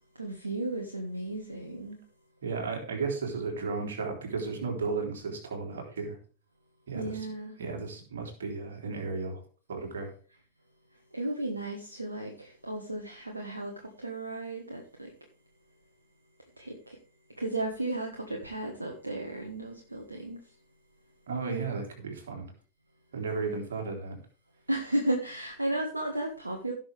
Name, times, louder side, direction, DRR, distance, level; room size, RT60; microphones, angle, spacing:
voice 1, 0.1-2.0 6.9-7.6 11.1-15.1 16.6-17.0 17.4-20.4 24.7-26.7, right 1 dB, 80° right, 1.6 m, -34 dB
voice 2, 2.4-6.2 6.9-7.3 7.6-9.4 9.7-10.1 21.3-22.5 23.1-24.2, right 4 dB, 65° right, 3.6 m, -34 dB
16.5 x 6.6 x 3.4 m
figure-of-eight pair, 90°, 0 cm